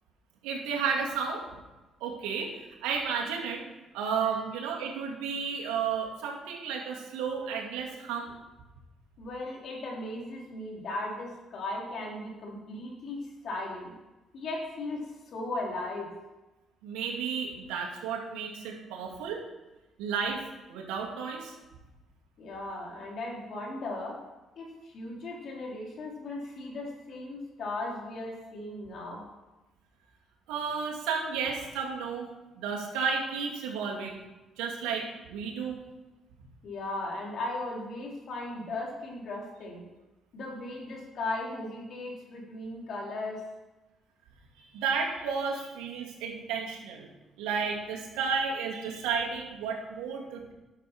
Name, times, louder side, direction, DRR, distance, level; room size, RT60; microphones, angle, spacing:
voice 1, 0.4-1.4 2.0-2.5 2.8-3.6 3.9-8.3 16.8-19.4 20.0-20.4 20.7-21.5 30.5-32.3 32.6-34.2 34.6-35.8 44.6-47.1 47.4-50.5, right 6 dB, 85° right, -1 dB, 2.4 m, -32 dB
voice 2, 9.2-13.9 14.3-16.1 22.4-24.2 24.6-29.3 36.6-39.8 40.3-43.4 45.5-45.6, left 2 dB, 65° left, -2 dB, 3.7 m, -37 dB
11.5 x 6.7 x 6.1 m, 1.1 s
supercardioid pair, 70°, 0 cm